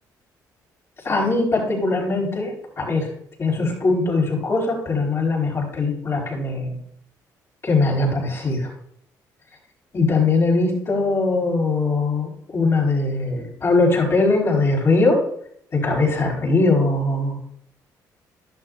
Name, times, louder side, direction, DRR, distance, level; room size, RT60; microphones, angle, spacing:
voice 1, 1.0-3.1 3.4-6.8 7.6-8.7 9.9-15.2 15.7-17.4, left 3 dB, 40° left, -1 dB, 4.4 m, -21 dB
12.5 x 11.5 x 2.5 m, 0.68 s
cardioid pair, 95°, 7 cm